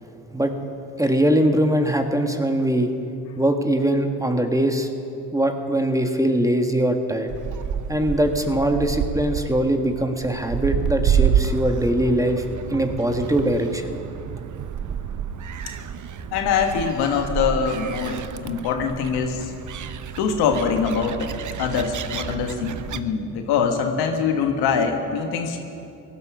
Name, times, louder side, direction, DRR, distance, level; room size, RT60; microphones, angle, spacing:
voice 1, 1.0-2.9 3.4-4.9 5.3-7.3 7.9-12.4 12.7-13.9, right 1 dB, 10° right, 5 dB, 1.6 m, -21 dB
Gull seagull, 7.3-23.0, right 8 dB, 50° right, 0.8 m, -29 dB
voice 2, 16.3-19.5 20.2-21.3 21.6-25.6, left 6 dB, 80° left, 5 dB, 1.5 m, -23 dB
17.5 x 12.0 x 6.2 m, 2.7 s
supercardioid pair, 60°, 38 cm